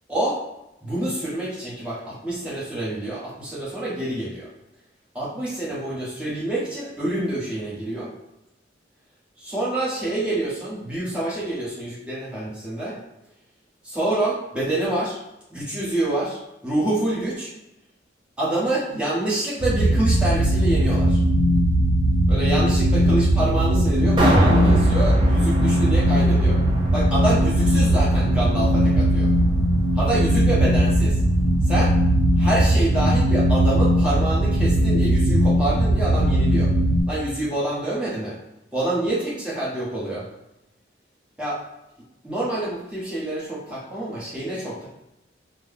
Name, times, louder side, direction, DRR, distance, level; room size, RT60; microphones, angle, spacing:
voice 1, 0.1-0.4 0.8-4.5 5.1-8.1 9.4-13.0 13.8-15.2 15.5-17.5 18.4-21.2 22.3-26.6 26.9-29.3 30.0-31.2 31.6-31.9 32.4-36.7 37.1-38.4 38.7-40.3 41.4-41.6 42.2-44.9, right 1 dB, 5° right, -8 dB, 1.1 m, -27 dB
sound 1, 19.6-37.0, right 1 dB, 85° right, 0.6 m, -19 dB
sound 2, 24.2-30.4 30.8-30.9, equal, 25° right, 0.6 m, -25 dB
3.8 x 2.2 x 3.5 m, 0.89 s
head